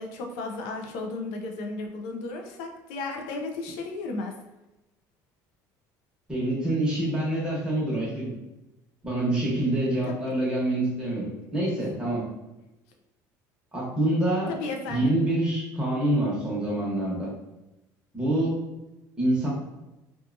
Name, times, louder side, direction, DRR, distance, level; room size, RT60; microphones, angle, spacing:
voice 1, 0.0-4.3 10.1-10.2 14.5-15.1, left 3 dB, 85° left, 2 dB, 0.4 m, -34 dB
voice 2, 6.3-8.3 9.0-12.3 13.7-14.6 14.9-17.3 18.1-18.6 19.2-19.5, right 1 dB, 10° right, -6 dB, 1.0 m, -26 dB
2.6 x 2.3 x 2.5 m, 0.98 s
cardioid pair, 145°, 7 cm